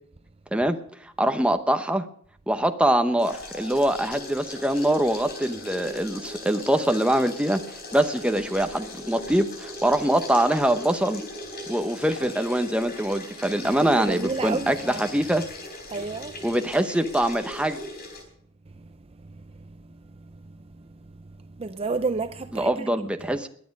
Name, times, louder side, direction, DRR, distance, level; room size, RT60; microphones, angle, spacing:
voice 1, 1.2-2.0 2.5-7.6 7.9-11.2 11.7-15.4 16.4-17.8 22.5-23.5, right 1 dB, 5° right, 0.9 m, -23 dB
sound 1, 3.2-18.2, left 2 dB, 50° left, 4.1 m, -39 dB
voice 2, 13.6-15.1 15.9-16.5 18.8-18.9 19.3-19.4 19.7-19.8 20.2-20.4 20.8-21.0 21.5-22.9 23.2-23.4, right 4 dB, 30° right, 0.5 m, -31 dB
21.5 x 8.6 x 5.3 m
head